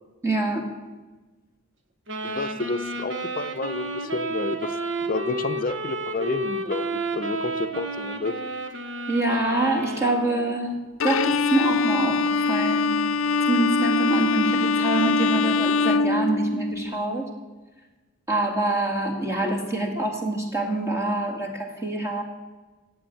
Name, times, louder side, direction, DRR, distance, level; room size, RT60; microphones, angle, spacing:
voice 1, 0.2-0.8 9.1-13.1 13.5-17.3 18.3-22.2, right 2 dB, 15° right, 0 dB, 2.0 m, -25 dB
sound 1, 2.1-10.5, right 2 dB, 60° right, 1.5 m, -31 dB
voice 2, 2.2-4.7 5.1-8.4, left 3 dB, 40° left, 11 dB, 0.7 m, -30 dB
Bowed string instrument, 11.0-16.9, left 4 dB, 80° left, 0.6 m, -23 dB
15.0 x 7.8 x 9.1 m, 1.2 s
head